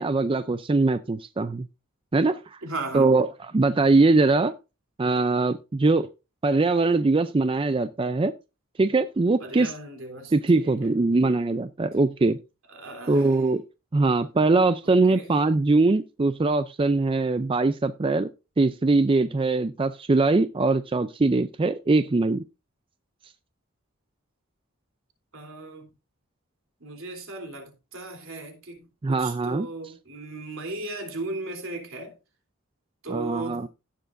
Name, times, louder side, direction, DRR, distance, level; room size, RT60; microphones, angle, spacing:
voice 1, 0.0-1.7 2.1-2.6 2.9-3.3 3.5-4.5 5.0-6.1 6.4-8.3 8.8-9.7 10.3-12.4 13.1-13.6 13.9-18.3 18.6-22.4 29.0-29.7 33.1-33.7, right 3 dB, 25° right, 0.4 m, -22 dB
voice 2, 2.6-3.1 9.4-10.9 12.7-13.4 15.1-15.3 25.3-25.9 26.8-32.1 33.0-33.7, right 2 dB, 70° right, 3.3 m, -37 dB
16.5 x 7.0 x 2.6 m
head